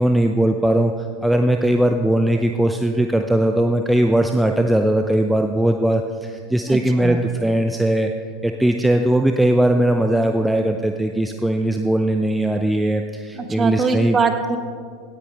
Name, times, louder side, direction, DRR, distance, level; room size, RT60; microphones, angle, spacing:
voice 1, 0.0-8.1 8.4-14.2, right 1 dB, 5° right, 5 dB, 0.6 m, -19 dB
voice 2, 6.7-7.2 13.4-14.6, right 4 dB, 25° right, 7 dB, 1.2 m, -22 dB
17.0 x 10.0 x 3.4 m, 2.1 s
figure-of-eight pair, 80°, 0 cm